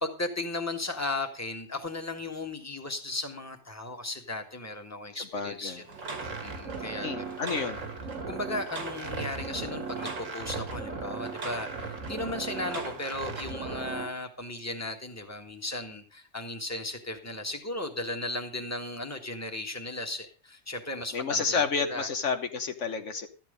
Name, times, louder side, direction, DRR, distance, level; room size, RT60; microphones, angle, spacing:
voice 1, 0.0-7.4 8.3-22.1, left 2 dB, 10° left, 4 dB, 1.8 m, -36 dB
voice 2, 5.1-5.8 7.0-7.8 21.1-23.3, left 5 dB, 70° left, 7 dB, 1.4 m, -30 dB
sound 1, 5.9-14.1, right 4 dB, 85° right, 2.4 m, -36 dB
13.5 x 9.3 x 5.2 m, 0.37 s
omnidirectional pair, 1.3 m